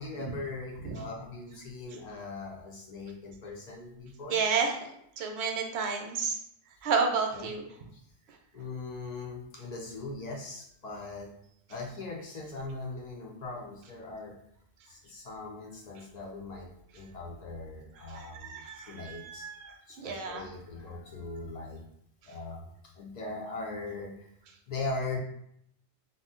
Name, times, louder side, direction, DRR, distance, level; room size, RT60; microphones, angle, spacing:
voice 1, 0.0-4.4 7.3-7.5 7.9-8.0 8.5-11.3 11.7-14.4 14.9-16.7 16.9-19.5 19.9-21.9 22.3-22.7 22.9-24.3 24.7-25.2, left 3 dB, 55° left, -1 dB, 0.5 m, -40 dB
voice 2, 4.3-4.8 5.2-6.4 6.8-7.7 18.1-20.5, right 5 dB, 70° right, 3 dB, 0.8 m, -31 dB
2.5 x 2.1 x 3.6 m, 0.73 s
omnidirectional pair, 1.2 m